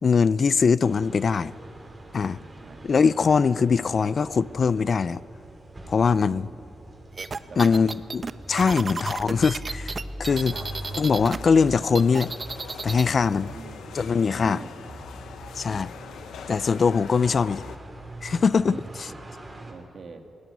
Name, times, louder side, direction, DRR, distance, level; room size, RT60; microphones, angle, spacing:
voice 1, 0.0-1.5 2.1-2.4 2.8-5.2 5.9-6.4 7.6-8.2 8.5-10.5 11.0-12.3 12.8-13.5 13.9-14.6 15.6-15.9 16.5-17.6 18.2-18.7, left 5 dB, 55° left, 19 dB, 0.5 m, -22 dB
sound 1, 0.8-19.7, right 1 dB, 30° right, 5.8 m, -42 dB
voice 2, 6.2-6.6 7.5-7.9 8.7-9.0 10.5-10.7 13.5-14.0 14.4-14.7 15.7-15.9 17.2-17.8 18.7-19.0 19.7-20.2, right 4 dB, 60° right, 5 dB, 2.5 m, -43 dB
sound 2, 7.2-11.4 11.7-13.1, right 4 dB, 45° right, 1.0 m, -33 dB
sound 3, 10.3-17.8, left 7 dB, 90° left, 1.2 m, -43 dB
20.0 x 17.5 x 9.5 m, 2.4 s
cardioid pair, 70°, 0 cm